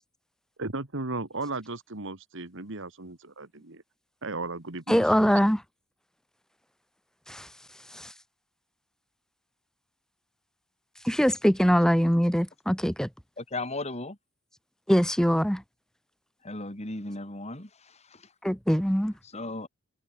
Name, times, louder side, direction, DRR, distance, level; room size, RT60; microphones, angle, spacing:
voice 1, 0.6-3.8 4.2-5.3, right 3 dB, 60° right, 2.0 m, -36 dB
voice 2, 4.9-5.6 7.3-7.5 7.9-8.1 11.0-13.1 14.9-15.6 18.4-19.1, equal, 5° left, 1.3 m, -23 dB
voice 3, 13.4-14.2 16.4-17.7 19.3-19.7, left 2 dB, 30° left, 3.3 m, -35 dB
head